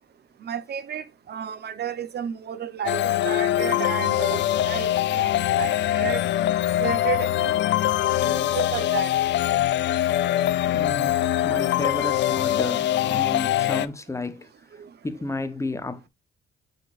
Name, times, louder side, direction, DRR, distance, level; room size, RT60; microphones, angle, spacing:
voice 1, 0.4-6.2 6.8-7.5 8.3-9.1 14.8-14.9, right 9 dB, 55° right, 0.9 m, -32 dB
sound 1, 2.9-13.9, left 13 dB, 65° left, 0.5 m, -23 dB
voice 2, 10.7-14.5 15.0-16.1, left 2 dB, 15° left, 1.0 m, -32 dB
6.8 x 6.2 x 2.5 m
cardioid pair, 90°, 20 cm